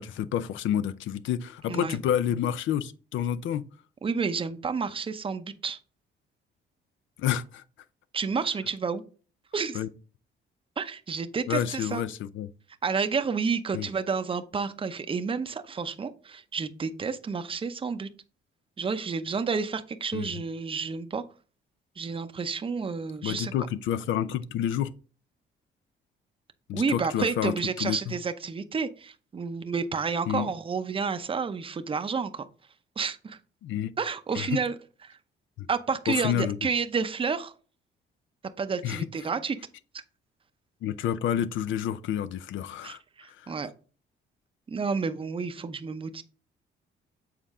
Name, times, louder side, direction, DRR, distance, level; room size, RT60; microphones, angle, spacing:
voice 1, 0.0-3.6 7.2-7.6 9.7-9.9 11.5-12.5 13.7-13.9 20.1-20.3 23.2-24.9 26.7-28.1 30.3-30.5 33.6-33.9 34.4-34.6 35.6-35.7 36.1-36.6 38.8-39.1 40.8-43.0 43.3-43.5, left 10 dB, 75° left, 0.5 m, -29 dB
voice 2, 4.0-5.8 8.1-9.0 9.5-9.8 10.8-12.0 12.8-18.1 18.8-21.2 22.0-23.5 26.7-32.4 33.0-33.4 34.0-34.7 35.0-35.2 35.7-37.5 38.6-39.6 39.9-40.0 42.8-43.7 44.7-46.2, right 5 dB, 25° right, 0.6 m, -30 dB
7.3 x 4.3 x 3.6 m
cardioid pair, 90°, 20 cm